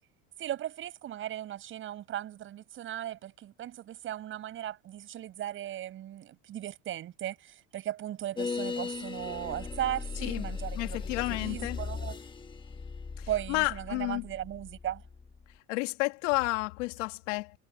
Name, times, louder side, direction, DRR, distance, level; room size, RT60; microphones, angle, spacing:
voice 1, 0.4-11.0 11.3-12.2 13.3-15.0, right 12 dB, 35° right, 7.4 m, -37 dB
sound 1, 8.4-15.5, left 5 dB, 15° left, 1.5 m, -38 dB
voice 2, 10.2-11.8 13.2-14.2 15.7-17.6, left 23 dB, 80° left, 2.0 m, -31 dB
cardioid pair, 160°, 36 cm